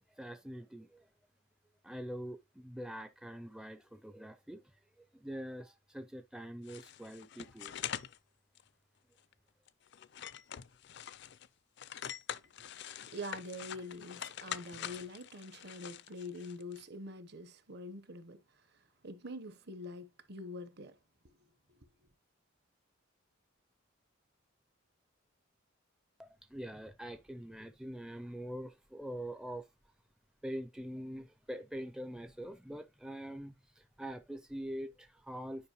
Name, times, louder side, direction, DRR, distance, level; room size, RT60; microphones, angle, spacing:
voice 1, 0.1-1.1 1.8-4.6 5.0-7.7 26.2-29.7 30.4-35.7, equal, 5° right, 0.4 m, -44 dB
sound 1, 6.7-8.2 8.6-8.7 9.2-9.3 9.7-11.5 11.8-16.8, left 10 dB, 60° left, 0.4 m, -44 dB
voice 2, 12.6-18.4 19.0-21.0, left 1 dB, 55° right, 0.9 m, -45 dB
9.8 x 5.1 x 3.0 m
head